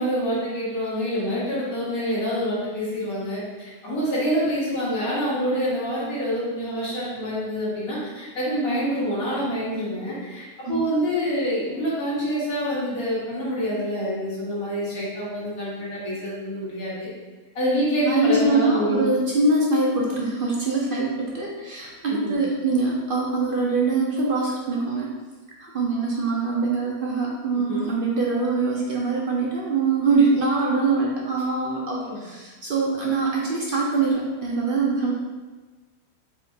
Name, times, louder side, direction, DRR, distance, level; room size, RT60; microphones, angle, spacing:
voice 1, 0.0-17.1 17.6-19.1 22.1-22.3 27.5-27.9 32.0-32.2, equal, 85° left, -8 dB, 2.0 m, -26 dB
voice 2, 18.1-25.1 25.6-35.1, right 3 dB, 55° right, -2 dB, 0.6 m, -23 dB
4.9 x 2.5 x 4.0 m, 1.3 s
omnidirectional pair, 1.5 m